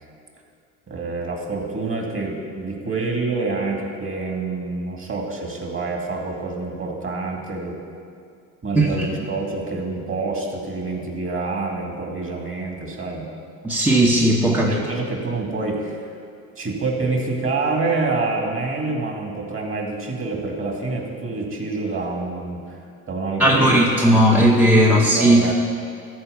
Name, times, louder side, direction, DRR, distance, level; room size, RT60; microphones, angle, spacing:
voice 1, 0.9-7.8 8.6-13.3 14.5-16.0 16.6-22.8 23.1-25.5, right 3 dB, 30° right, 1 dB, 2.4 m, -27 dB
voice 2, 13.6-14.7 23.4-25.5, right 1 dB, 5° right, -2 dB, 1.0 m, -16 dB
13.0 x 4.7 x 7.0 m, 2.2 s
hypercardioid pair, 70°, 40 cm